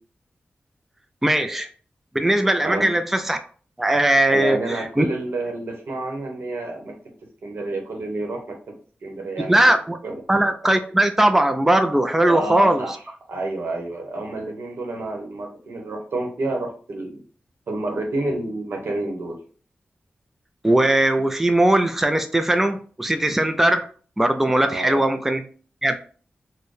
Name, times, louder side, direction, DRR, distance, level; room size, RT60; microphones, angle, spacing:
voice 1, 1.2-1.7 2.1-3.4 3.8-5.0 9.5-10.0 10.3-12.8 20.6-23.9 24.2-25.4 25.8-26.0, right 1 dB, 10° right, 7 dB, 0.3 m, -19 dB
voice 2, 4.3-6.9 7.4-8.8 9.0-9.8 10.0-10.2 12.2-13.0 13.3-17.2 17.7-19.4 24.6-25.0, right 2 dB, 85° right, 2 dB, 0.9 m, -29 dB
4.2 x 2.1 x 3.2 m, 0.43 s
wide cardioid pair, 115°, 4 cm